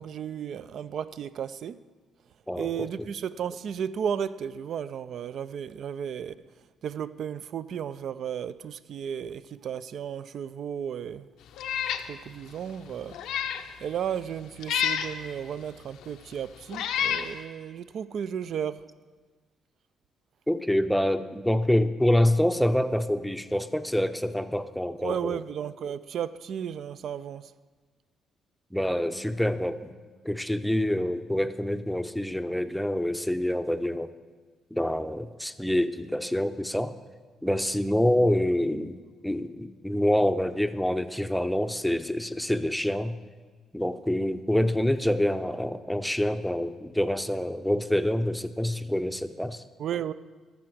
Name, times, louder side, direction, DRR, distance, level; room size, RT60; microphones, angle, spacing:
voice 1, 0.0-1.8 2.6-6.3 6.8-11.3 12.1-13.2 13.8-18.8 25.0-27.5 49.8-50.1, right 8 dB, 65° right, 0.4 m, -34 dB
voice 2, 2.5-2.9 20.5-25.4 28.7-29.9 30.2-34.1 34.7-36.9 37.4-43.2 43.7-49.6, left 1 dB, ahead, 0.6 m, -26 dB
Meow, 11.6-12.1 12.5-12.6 13.1-13.7 14.6-15.1 16.0-16.1 16.7-17.3, left 9 dB, 85° left, 0.6 m, -28 dB
14.0 x 5.8 x 6.1 m
cardioid pair, 90°, 0 cm